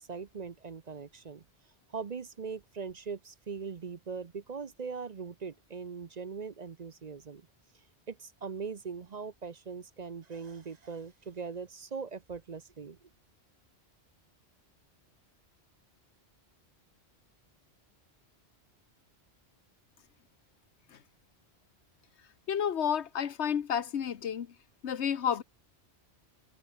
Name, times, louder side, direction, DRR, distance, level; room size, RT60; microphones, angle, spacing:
voice 1, 0.0-1.4 1.9-7.4 8.1-13.0, right 5 dB, 45° right, 0.8 m, -40 dB
voice 2, 22.5-24.5 24.8-25.4, left 8 dB, 85° left, 1.3 m, -30 dB
omnidirectional pair, 1.1 m